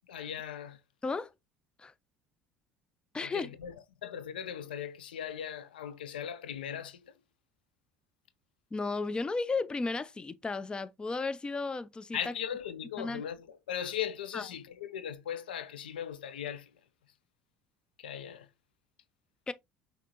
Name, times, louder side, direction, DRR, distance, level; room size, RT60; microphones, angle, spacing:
voice 1, 0.1-0.8 3.2-3.7 4.0-7.1 12.1-16.7 18.0-18.5, left 9 dB, 85° left, 0.4 m, -38 dB
voice 2, 3.1-3.5 8.7-12.3 13.0-13.2 14.3-14.5 19.5-19.6, left 3 dB, 20° left, 0.4 m, -34 dB
5.7 x 2.6 x 2.8 m
hypercardioid pair, 65°, 5 cm